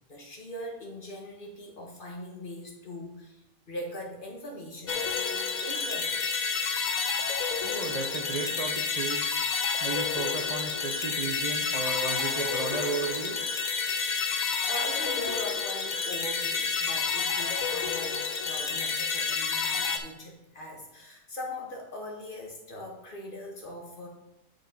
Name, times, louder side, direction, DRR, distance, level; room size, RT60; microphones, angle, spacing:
voice 1, 0.1-6.2 14.7-24.1, left 1 dB, 40° left, 0 dB, 1.3 m, -41 dB
sound 1, 4.9-20.0, left 5 dB, 55° left, 0.5 m, -29 dB
voice 2, 7.6-9.2 9.8-13.4, right 3 dB, 45° right, 1 dB, 0.5 m, -34 dB
6.1 x 5.1 x 5.3 m, 0.93 s
omnidirectional pair, 1.5 m